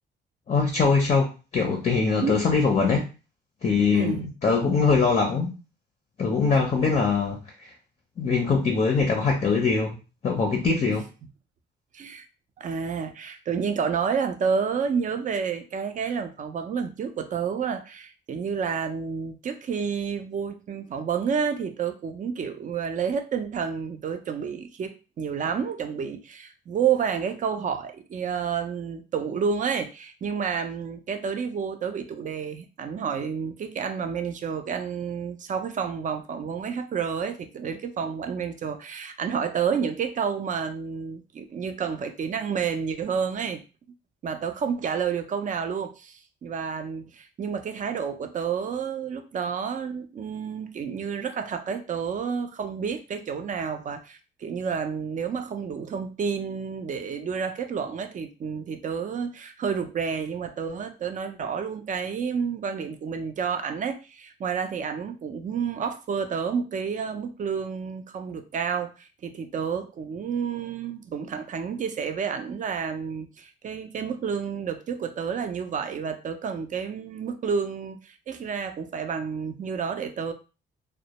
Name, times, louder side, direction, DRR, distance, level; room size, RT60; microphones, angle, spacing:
voice 1, 0.5-3.1 3.6-5.5 6.2-7.7 8.2-10.0 10.2-11.1, left 4 dB, 35° left, 1 dB, 0.5 m, -22 dB
voice 2, 3.9-4.3 11.9-12.3 12.6-43.6 44.2-80.3, right 6 dB, 40° right, 7 dB, 0.4 m, -30 dB
2.1 x 2.0 x 2.9 m, 0.32 s
cardioid pair, 90°, 20 cm